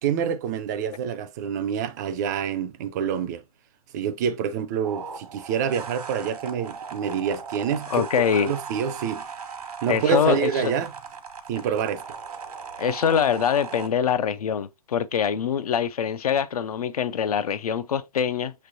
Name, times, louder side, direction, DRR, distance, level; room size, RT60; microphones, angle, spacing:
voice 1, 0.0-3.4 3.9-8.0 8.3-9.3 9.8-10.9 11.5-12.0, right 7 dB, 30° right, 0.4 m, -27 dB
sound 1, 4.8-13.9, right 6 dB, 80° right, 1.2 m, -38 dB
voice 2, 7.9-8.5 9.9-10.6 12.8-18.5, left 7 dB, 70° left, 0.5 m, -24 dB
5.9 x 3.2 x 2.6 m
hypercardioid pair, 140°, 19 cm